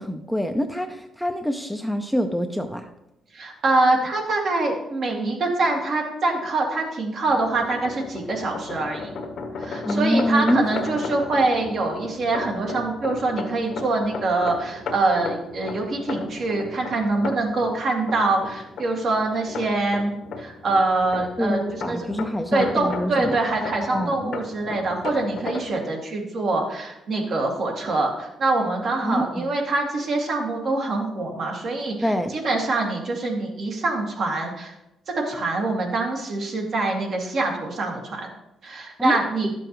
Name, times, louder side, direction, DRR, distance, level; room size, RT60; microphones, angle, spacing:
voice 1, 0.0-2.9 9.8-10.6 21.4-23.4 23.8-24.3 29.0-29.5 32.0-32.3 39.0-39.2, equal, ahead, 6 dB, 0.6 m, -25 dB
voice 2, 3.3-9.1 9.6-22.1 22.5-34.7 35.1-38.3 38.6-39.5, right 2 dB, 60° right, 0 dB, 2.1 m, -24 dB
sound 1, 7.2-25.7, left 4 dB, 65° left, 1.1 m, -35 dB
11.0 x 6.9 x 3.1 m, 0.89 s
cardioid pair, 90°, 0 cm